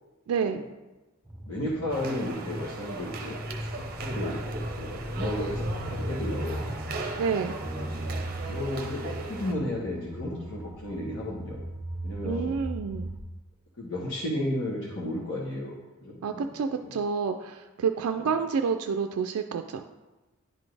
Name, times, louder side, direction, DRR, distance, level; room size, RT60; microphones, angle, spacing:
voice 1, 0.3-0.6 7.2-7.6 12.2-13.1 16.2-19.8, right 6 dB, 85° right, 6 dB, 0.3 m, -29 dB
sound 1, 1.3-13.2, right 1 dB, 10° right, 0.9 m, -36 dB
voice 2, 1.5-3.4 3.7-5.6 5.9-6.6 7.6-8.0 8.5-11.6 12.0-12.5 13.8-16.5 16.8-17.0 18.1-18.2, left 1 dB, 60° left, -6 dB, 1.1 m, -33 dB
sound 2, 1.9-9.5, right 3 dB, 45° right, 0.7 m, -38 dB
10.5 x 4.1 x 3.3 m, 1.1 s
head